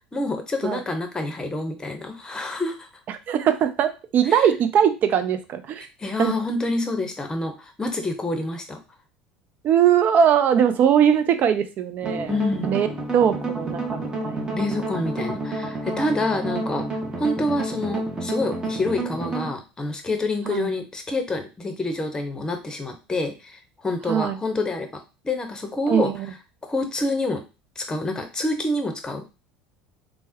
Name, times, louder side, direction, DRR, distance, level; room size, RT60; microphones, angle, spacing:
voice 1, 0.0-2.9 4.3-4.5 6.0-8.8 12.3-12.7 14.5-26.1 26.6-27.4 27.8-29.2, left 2 dB, 15° left, 6 dB, 0.7 m, -27 dB
voice 2, 3.3-5.9 6.2-6.3 9.6-12.3 12.6-12.9 13.1-14.6 16.5-16.7 20.5-20.7 24.1-24.4 25.9-26.3, right 8 dB, 50° right, 10 dB, 0.4 m, -21 dB
sound 1, 12.0-19.5, right 2 dB, 20° right, 0.8 m, -30 dB
3.3 x 2.1 x 2.8 m, 0.29 s
hypercardioid pair, 80°, 4 cm